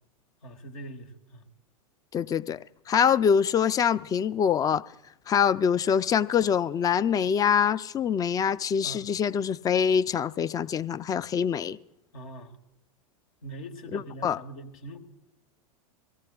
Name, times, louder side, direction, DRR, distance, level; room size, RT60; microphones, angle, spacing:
voice 1, 0.4-1.4 8.8-9.1 12.1-12.6 13.4-15.0, right 1 dB, 75° left, 5 dB, 1.6 m, -42 dB
voice 2, 2.1-2.6 2.9-4.8 5.3-11.8 13.9-14.4, left 7 dB, 20° left, 18 dB, 0.4 m, -24 dB
23.5 x 17.0 x 2.4 m, 0.88 s
hypercardioid pair, 95°, 18 cm